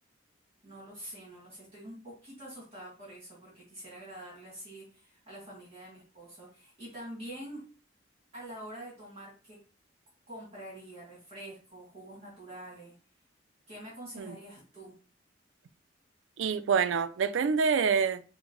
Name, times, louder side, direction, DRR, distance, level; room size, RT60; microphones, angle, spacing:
voice 1, 0.6-7.6 8.3-9.6 10.3-12.9 13.7-15.0, right 1 dB, 30° right, 1.8 m, -46 dB
voice 2, 16.4-18.2, right 6 dB, 85° right, 0.4 m, -26 dB
6.2 x 2.1 x 3.0 m
head